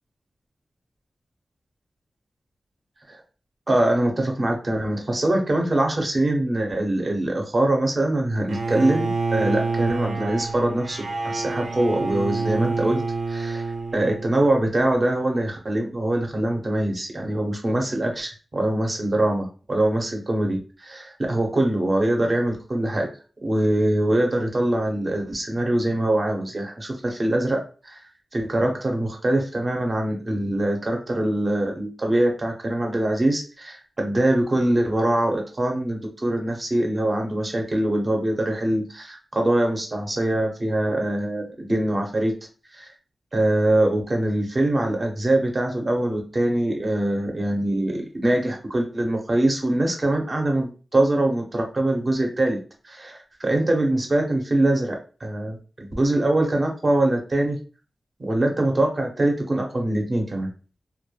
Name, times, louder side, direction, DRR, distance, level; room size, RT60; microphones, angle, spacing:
voice 1, 3.7-13.0 13.3-13.7 13.9-23.1 23.4-28.0 28.3-42.3 42.7-42.9 43.3-52.6 52.8-57.6 58.2-60.5, right 1 dB, 35° right, 1 dB, 0.7 m, -23 dB
Bowed string instrument, 8.5-14.6, right 3 dB, 80° right, 0.5 m, -28 dB
2.2 x 2.1 x 3.1 m, 0.37 s
wide cardioid pair, 100°, 0 cm